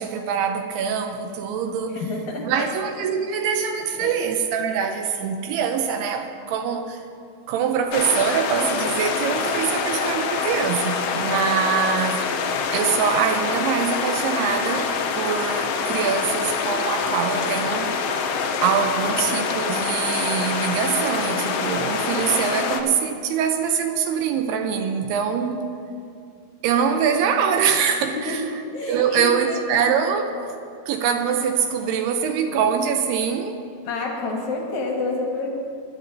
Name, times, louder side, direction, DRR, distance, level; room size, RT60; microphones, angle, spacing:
voice 1, 0.0-2.0 2.4-7.0 7.5-12.2 12.7-17.9 18.6-25.6 26.6-28.4 28.9-30.6 30.9-33.5, right 7 dB, 80° right, 6 dB, 2.4 m, -24 dB
voice 2, 1.9-2.7 4.0-4.1 28.1-28.4 28.7-29.6 33.8-35.5, left 2 dB, 55° left, -1 dB, 2.1 m, -28 dB
sound 1, 7.9-22.8, left 5 dB, 80° left, 2.2 m, -25 dB
21.5 x 12.5 x 2.7 m, 2.3 s
omnidirectional pair, 5.2 m